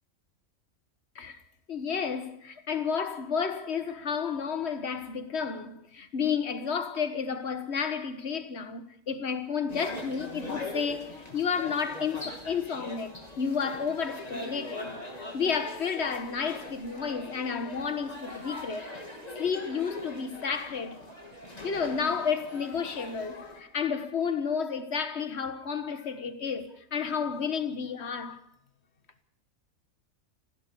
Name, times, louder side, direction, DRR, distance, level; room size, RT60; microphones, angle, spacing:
voice 1, 1.7-14.9 15.3-19.0 19.4-21.0 21.6-28.4, left 6 dB, 55° left, 1.7 m, -31 dB
sound 1, 9.7-23.6, left 1 dB, 30° left, 3.2 m, -42 dB
25.0 x 15.5 x 6.9 m
omnidirectional pair, 1.4 m